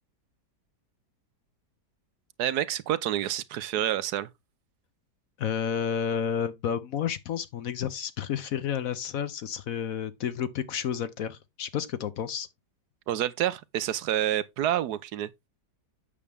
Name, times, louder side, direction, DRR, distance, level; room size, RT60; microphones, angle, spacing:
voice 1, 2.4-4.3 13.1-15.3, right 11 dB, 75° right, 1.2 m, -28 dB
voice 2, 5.4-12.5, left 8 dB, 65° left, 1.0 m, -31 dB
8.4 x 6.7 x 3.4 m
omnidirectional pair, 1.8 m